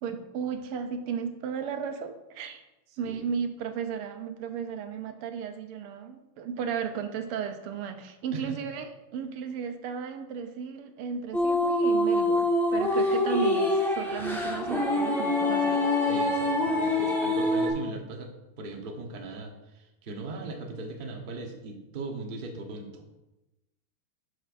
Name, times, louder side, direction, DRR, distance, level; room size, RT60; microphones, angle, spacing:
voice 1, 0.0-2.6 3.0-15.9, right 7 dB, 85° right, 7 dB, 1.6 m, -35 dB
sound 1, 11.3-17.7, left 1 dB, ahead, 0.7 m, -25 dB
voice 2, 16.0-18.3 18.6-23.0, right 3 dB, 45° right, 2 dB, 0.7 m, -38 dB
11.0 x 6.3 x 2.5 m, 0.98 s
omnidirectional pair, 2.4 m